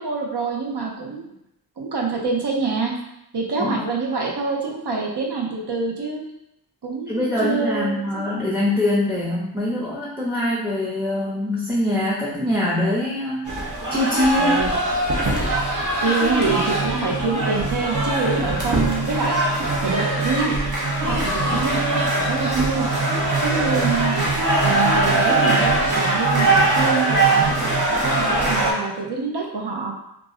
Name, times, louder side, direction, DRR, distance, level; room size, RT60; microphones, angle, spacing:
voice 1, 0.0-1.3 1.8-3.0 3.3-6.2 6.8-8.3 14.4-14.8 16.0-19.4 19.8-20.5 21.1-21.8 22.3-22.9 23.4-24.2 24.6-27.5 27.9-29.9, right 4 dB, 85° right, -1 dB, 0.6 m, -26 dB
voice 2, 7.1-13.6 13.9-14.5, left 1 dB, 5° right, -7 dB, 0.6 m, -23 dB
sound 1, 13.5-28.7, right 2 dB, 50° right, 0.7 m, -21 dB
2.4 x 2.0 x 3.6 m, 0.83 s
wide cardioid pair, 45°, 40 cm